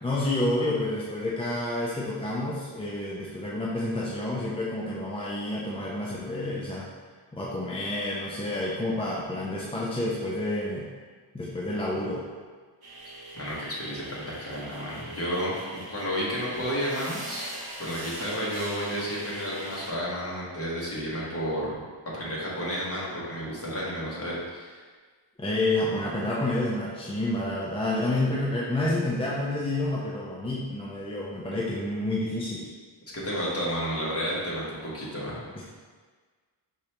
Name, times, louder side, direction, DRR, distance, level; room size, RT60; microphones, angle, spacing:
voice 1, 0.0-6.9 7.3-10.9 11.3-12.2 25.4-32.7 35.6-35.7, left 1 dB, 15° left, -5 dB, 0.4 m, -29 dB
sound 1, 12.8-19.9, right 1 dB, 50° right, 0.9 m, -41 dB
voice 2, 13.3-21.7 22.1-24.8 33.1-35.4, equal, 30° left, -6 dB, 1.2 m, -31 dB
4.9 x 3.3 x 2.9 m, 1.5 s
wide cardioid pair, 130°, 48 cm